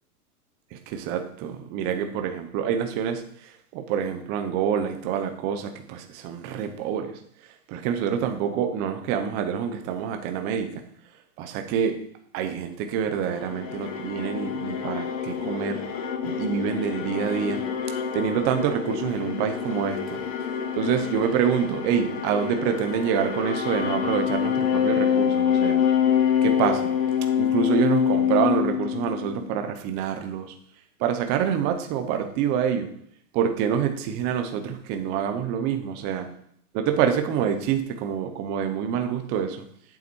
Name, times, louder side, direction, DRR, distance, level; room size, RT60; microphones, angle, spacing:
voice 1, 0.7-3.2 3.7-7.2 7.7-10.8 11.4-12.0 12.3-15.8 16.2-17.6 18.1-20.2 20.7-25.8 26.4-26.9 27.4-30.5 31.0-32.9 33.3-36.3 36.7-39.6, right 8 dB, 20° right, 6 dB, 0.7 m, -26 dB
sound 1, 13.2-29.5, left 8 dB, 25° left, 0.6 m, -26 dB
8.4 x 7.2 x 4.5 m, 0.65 s
hypercardioid pair, 150°, 46 cm